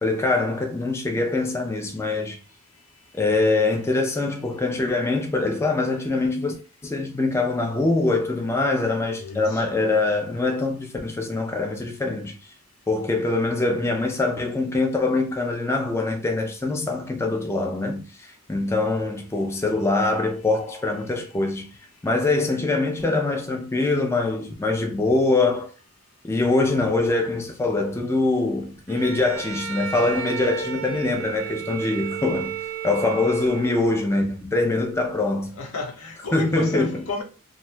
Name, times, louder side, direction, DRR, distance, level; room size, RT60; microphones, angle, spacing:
voice 1, 0.0-2.4 3.1-6.5 6.8-12.4 12.9-21.7 22.0-25.7 26.2-32.6 32.8-35.5 36.3-37.0, left 2 dB, 10° left, 0.3 m, -23 dB
voice 2, 9.2-9.6 35.6-37.2, left 3 dB, 80° left, 0.7 m, -31 dB
Bowed string instrument, 28.9-34.1, right 8 dB, 65° right, 0.4 m, -33 dB
2.7 x 2.1 x 3.1 m
head